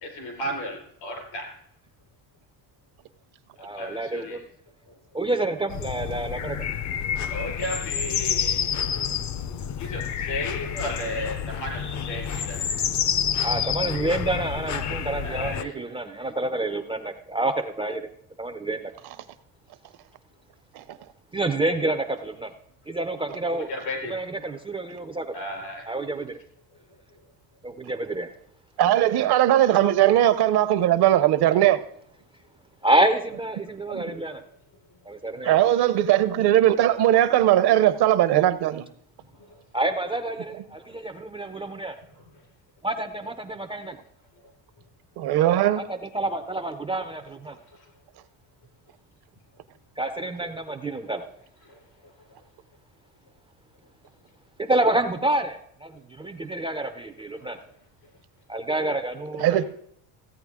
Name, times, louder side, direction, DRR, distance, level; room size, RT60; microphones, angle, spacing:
voice 1, 0.0-1.5 3.7-4.4 7.3-9.1 9.8-12.6 15.2-15.7 23.7-24.1 25.3-25.8 57.4-57.5, left 1 dB, 80° left, 4.5 m, -34 dB
voice 2, 3.6-4.4 5.1-6.7 13.4-18.0 18.4-18.8 21.3-22.5 22.9-23.7 24.1-25.3 25.9-26.4 27.6-28.3 32.8-34.4 35.1-35.6 39.7-42.0 42.8-44.0 45.8-47.6 50.0-51.2 54.6-57.6 58.5-59.6, right 2 dB, 15° right, 0.4 m, -28 dB
sound 1, 5.7-15.6, left 8 dB, 40° left, 0.6 m, -29 dB
voice 3, 28.8-31.8 33.9-34.0 35.4-38.9 45.2-45.8 59.4-59.6, right 12 dB, 60° right, 0.8 m, -19 dB
15.5 x 8.7 x 3.6 m
cardioid pair, 135°, 43 cm